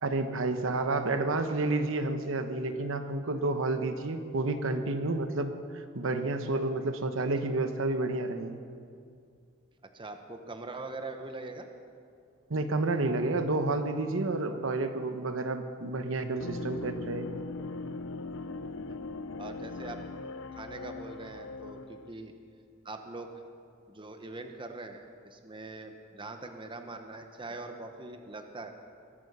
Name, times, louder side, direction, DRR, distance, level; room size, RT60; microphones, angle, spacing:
voice 1, 0.0-8.6 12.5-17.3, right 2 dB, 70° right, 8 dB, 1.0 m, -30 dB
voice 2, 9.9-11.7 18.9-19.0 19.4-20.0 20.5-22.3 22.8-23.3 23.9-28.7, right 2 dB, 25° right, 6 dB, 1.0 m, -42 dB
sound 1, 16.4-22.1, left 3 dB, 70° left, 0.7 m, -40 dB
21.5 x 9.0 x 6.7 m, 2.3 s
head